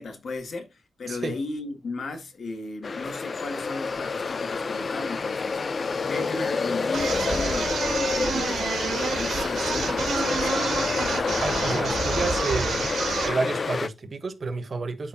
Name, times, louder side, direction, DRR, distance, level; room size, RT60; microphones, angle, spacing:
voice 1, 0.0-5.7 6.1-10.7, left 3 dB, 55° left, 1.9 m, -35 dB
voice 2, 1.1-1.4 11.4-12.9 13.2-15.1, right 4 dB, 40° right, 1.3 m, -30 dB
sound 1, 2.8-13.9, left 4 dB, 40° left, 0.5 m, -28 dB
sound 2, 6.9-13.4, right 5 dB, 85° right, 2.2 m, -29 dB
12.5 x 4.4 x 2.7 m
wide cardioid pair, 155°, 0 cm